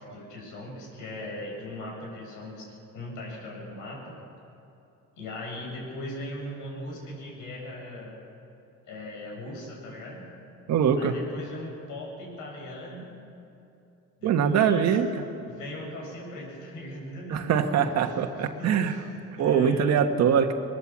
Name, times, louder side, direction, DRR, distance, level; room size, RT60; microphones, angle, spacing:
voice 1, 0.0-4.1 5.2-8.2 8.9-10.3 11.0-13.1 14.2-14.9 15.5-18.2 18.6-20.1, left 1 dB, 85° left, -1 dB, 7.9 m, -39 dB
voice 2, 10.7-11.1 14.2-15.2 17.3-18.9 19.4-20.5, right 7 dB, 60° right, 6 dB, 1.5 m, -23 dB
22.5 x 22.0 x 7.5 m, 2.7 s
cardioid pair, 160°, 30 cm